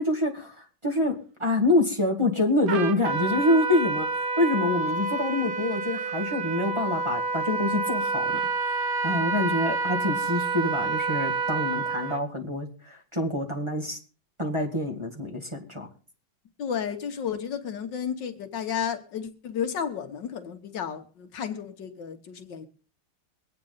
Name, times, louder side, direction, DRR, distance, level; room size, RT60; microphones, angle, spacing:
voice 1, 0.0-4.1 4.4-14.0 14.4-15.9, left 1 dB, 15° right, 1.9 m, -26 dB
Trumpet, 2.7-12.2, right 3 dB, 65° right, 1.7 m, -28 dB
voice 2, 16.6-22.7, left 8 dB, 70° left, 1.7 m, -32 dB
23.0 x 8.7 x 3.9 m
omnidirectional pair, 2.0 m